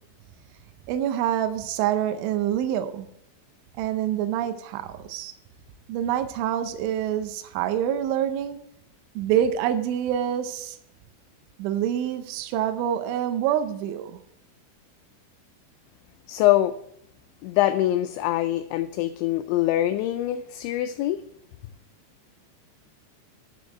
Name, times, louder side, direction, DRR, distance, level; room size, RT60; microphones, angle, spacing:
voice 1, 0.9-3.1 3.8-5.3 5.9-8.6 9.2-10.8 11.6-14.2, right 10 dB, 85° right, 8 dB, 3.1 m, -26 dB
voice 2, 16.3-16.7 17.4-21.2, left 14 dB, 85° left, 9 dB, 2.7 m, -24 dB
10.5 x 5.3 x 7.6 m, 0.71 s
omnidirectional pair, 5.5 m